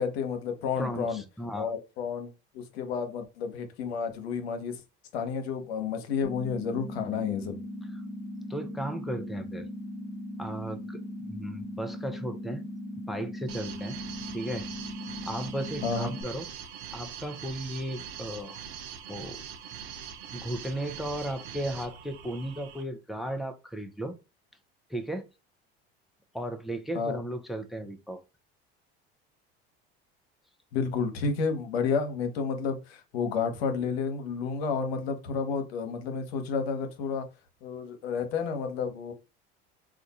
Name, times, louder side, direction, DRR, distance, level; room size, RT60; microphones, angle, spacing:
voice 1, 0.0-1.2 1.5-4.8 5.1-7.6 15.8-16.1 26.9-27.2 30.7-37.2 37.6-39.1, left 5 dB, 85° left, 0.8 m, -31 dB
voice 2, 0.8-1.7 7.9-8.0 8.5-9.7 10.4-12.6 13.1-14.0 14.3-14.7 15.2-16.5 16.9-18.6 19.1-19.4 20.3-24.1 24.9-25.3 26.3-28.2, right 1 dB, ahead, 0.5 m, -35 dB
sound 1, 6.2-16.2, left 1 dB, 50° left, 1.0 m, -39 dB
sound 2, 13.5-22.8, right 8 dB, 85° right, 0.7 m, -42 dB
2.5 x 2.3 x 4.1 m
hypercardioid pair, 80°, 31 cm